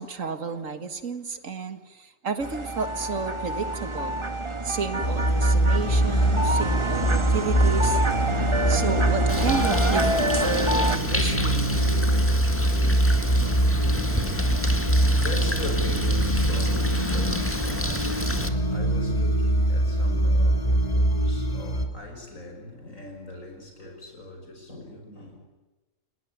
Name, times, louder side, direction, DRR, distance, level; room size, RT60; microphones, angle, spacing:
voice 1, 0.0-4.2 4.6-8.0 8.7-11.8, right 5 dB, 75° right, 9 dB, 2.2 m, -32 dB
sound 1, 2.4-11.0, right 1 dB, 25° right, 1.3 m, -27 dB
sound 2, 5.0-21.9, right 1 dB, 30° left, 2.5 m, -23 dB
Bird, 9.3-18.5, left 1 dB, 10° left, 1.9 m, -30 dB
voice 2, 13.8-25.5, left 2 dB, 90° left, 3 dB, 6.3 m, -40 dB
29.5 x 18.5 x 9.4 m, 1.1 s
omnidirectional pair, 1.4 m